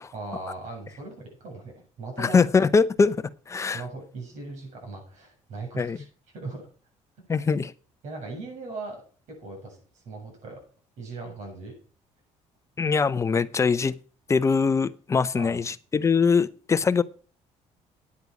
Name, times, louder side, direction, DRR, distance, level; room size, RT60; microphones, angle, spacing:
voice 1, 0.1-2.4 3.7-6.0 6.3-6.7 7.3-7.5 8.0-9.0 9.4-10.6 11.0-11.7 15.3-15.6, right 3 dB, 70° right, 7.2 m, -39 dB
voice 2, 2.2-3.2 3.5-3.8 5.8-6.0 7.3-7.7 12.8-13.9 14.3-17.0, left 5 dB, 25° left, 0.6 m, -22 dB
9.8 x 9.2 x 6.0 m
cardioid pair, 135°, 13 cm